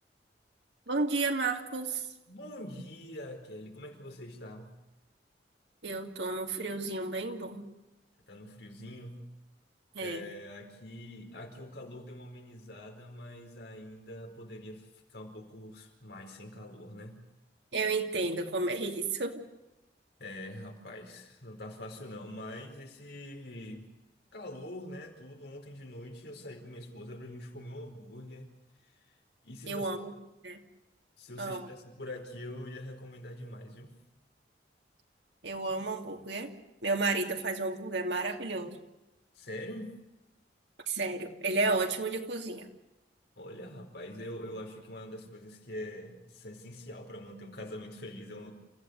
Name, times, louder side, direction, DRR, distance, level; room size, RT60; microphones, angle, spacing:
voice 1, 0.9-2.1 5.8-7.7 9.9-10.2 17.7-19.4 29.7-30.1 30.4-30.6 31.4-31.7 35.4-36.5 36.8-38.8 40.9-42.7, right 3 dB, 80° right, 3 dB, 2.8 m, -32 dB
voice 2, 2.3-4.7 8.3-9.2 10.0-17.2 20.2-23.8 24.3-28.5 28.8-29.1 29.4-29.9 31.2-33.9 39.3-40.0 43.4-48.5, left 1 dB, 65° left, 3 dB, 4.7 m, -44 dB
29.0 x 15.0 x 8.2 m, 0.98 s
head